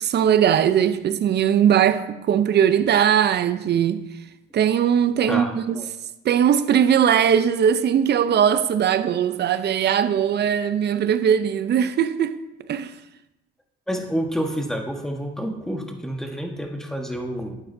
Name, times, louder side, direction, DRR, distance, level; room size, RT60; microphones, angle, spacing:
voice 1, 0.0-4.0 4.5-5.8 6.2-12.4 12.7-12.9, right 9 dB, 60° right, 0.6 m, -20 dB
voice 2, 5.3-5.9 13.9-17.6, equal, ahead, 1.4 m, -29 dB
11.5 x 8.6 x 2.7 m
cardioid pair, 90°, 20 cm